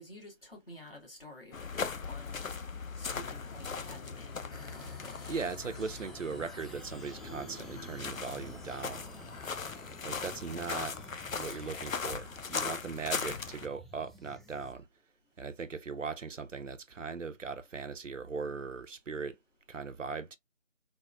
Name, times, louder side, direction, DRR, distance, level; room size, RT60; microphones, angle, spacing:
voice 1, 0.0-2.4 3.0-4.9, left 1 dB, 45° left, 1.3 m, -50 dB
sound 1, 1.5-13.7, left 5 dB, 90° left, 0.5 m, -39 dB
sound 2, 2.9-11.5, left 2 dB, 65° left, 0.9 m, -54 dB
sound 3, 4.5-14.7, right 1 dB, ahead, 0.3 m, -52 dB
voice 2, 5.3-9.1 10.0-11.0 11.3-14.9 15.4-19.4 19.7-20.4, right 5 dB, 70° right, 0.5 m, -39 dB
3.5 x 2.0 x 2.2 m
figure-of-eight pair, 165°, 40 cm